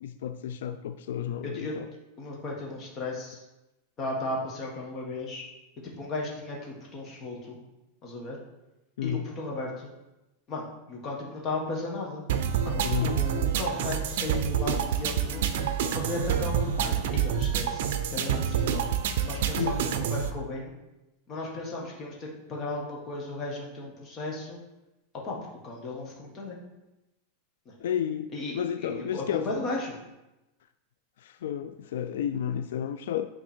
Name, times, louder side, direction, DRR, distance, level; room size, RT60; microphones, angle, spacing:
voice 1, 0.0-1.9 9.0-9.3 12.8-13.2 19.6-19.8 27.8-29.6 31.2-33.3, left 9 dB, 80° left, 9 dB, 0.3 m, -32 dB
voice 2, 1.4-1.8 2.2-3.4 4.0-5.4 5.8-7.6 8.0-8.4 9.0-9.9 10.5-12.2 12.6-15.4 15.9-18.9 19.2-19.8 20.1-20.7 21.3-24.6 25.1-26.6 27.6-27.7 28.3-30.0, left 2 dB, 25° left, -2 dB, 1.6 m, -35 dB
sound 1, 12.3-20.3, right 8 dB, 65° right, 0.6 m, -27 dB
8.8 x 3.6 x 4.4 m, 0.98 s
supercardioid pair, 165°, 0 cm